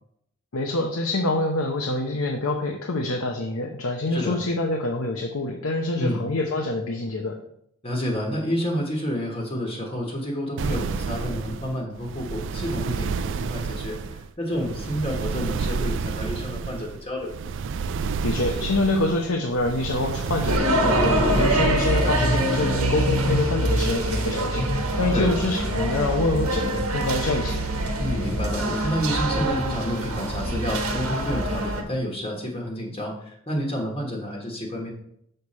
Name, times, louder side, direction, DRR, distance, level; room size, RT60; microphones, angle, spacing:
voice 1, 0.5-7.4 18.2-27.6, left 2 dB, 80° left, 2 dB, 0.8 m, -26 dB
voice 2, 4.1-4.4 6.0-6.2 7.8-17.3 21.9-22.2 25.1-25.3 28.0-34.9, equal, 25° left, -1 dB, 1.3 m, -29 dB
sound 1, 10.6-20.6, right 5 dB, 60° right, 0.4 m, -30 dB
sound 2, 20.5-31.8, right 1 dB, 90° right, 1.3 m, -24 dB
6.6 x 6.6 x 4.2 m, 0.71 s
head